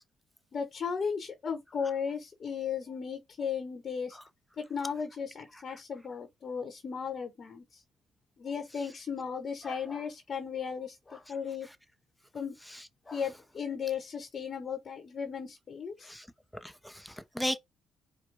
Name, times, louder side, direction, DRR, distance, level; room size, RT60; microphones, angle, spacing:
voice 1, 0.5-4.2 4.6-7.8 8.4-11.7 12.3-12.5 13.1-16.1, left 6 dB, 50° left, 1.0 m, -36 dB
sound 1, 9.6-10.1 11.0-11.3 13.0-13.3, left 2 dB, 25° left, 1.0 m, -49 dB
voice 2, 16.5-17.6, equal, 5° left, 0.7 m, -36 dB
4.7 x 2.2 x 4.7 m
cardioid pair, 80°, 0 cm